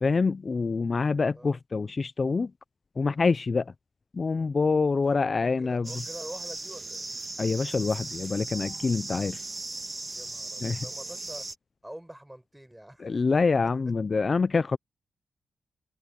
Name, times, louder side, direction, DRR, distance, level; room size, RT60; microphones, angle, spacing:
voice 1, 0.0-2.5 3.0-3.7 4.1-5.9 7.4-9.4 10.6-10.9 13.0-14.8, left 4 dB, 35° left, 0.3 m, -26 dB
voice 2, 5.0-7.0 10.1-11.5 11.8-13.1, right 1 dB, 5° right, 6.1 m, -45 dB
sound 1, 5.8-11.6, right 2 dB, 25° right, 1.7 m, -37 dB
wide cardioid pair, 120°, 0 cm